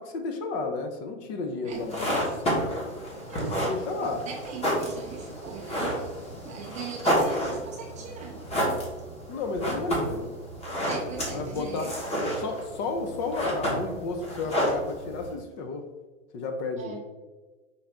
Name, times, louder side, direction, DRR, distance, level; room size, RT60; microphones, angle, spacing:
voice 1, 0.0-2.7 3.5-4.2 7.1-7.6 9.3-10.3 10.9-11.0 11.3-11.9 12.3-15.8 16.3-17.0, left 3 dB, 35° left, 5 dB, 0.6 m, -33 dB
voice 2, 1.6-2.1 3.3-3.5 4.0-6.1 6.4-8.4 10.8-12.0 14.4-14.5 16.7-17.0, right 6 dB, 20° right, -1 dB, 0.5 m, -40 dB
sound 1, 1.7-15.3, equal, 15° left, 1.2 m, -30 dB
5.5 x 2.6 x 3.4 m, 1.3 s
hypercardioid pair, 115°, 39 cm